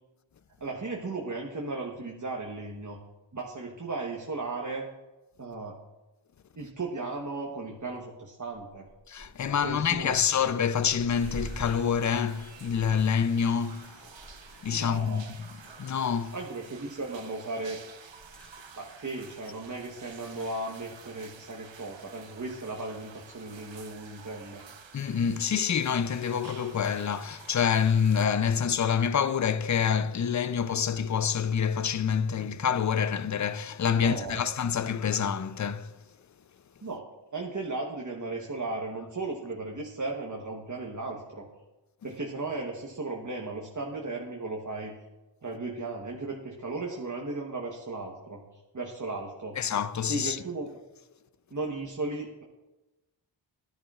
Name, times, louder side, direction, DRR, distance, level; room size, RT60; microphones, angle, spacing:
voice 1, 0.6-3.0 3.3-4.9 5.4-5.8 6.6-8.9 9.5-10.2 14.7-15.2 16.3-17.8 18.8-24.6 33.9-34.5 36.8-37.0 37.3-41.5 42.0-44.9 45.4-48.4 48.7-49.6 50.1-50.7 51.5-52.4, right 3 dB, 40° right, 1.1 m, -36 dB
sound 1, 7.8-7.9 8.5-15.2 15.6-15.8 18.2-20.6 21.6-21.7 22.5-22.6, right 1 dB, ahead, 3.5 m, -47 dB
voice 2, 9.1-14.0 14.6-15.5 15.8-16.4 24.9-35.9 49.6-50.4, left 7 dB, 40° left, 0.5 m, -27 dB
sound 2, 11.1-28.3, right 6 dB, 70° right, 0.9 m, -50 dB
13.5 x 10.5 x 2.4 m
wide cardioid pair, 50°, 46 cm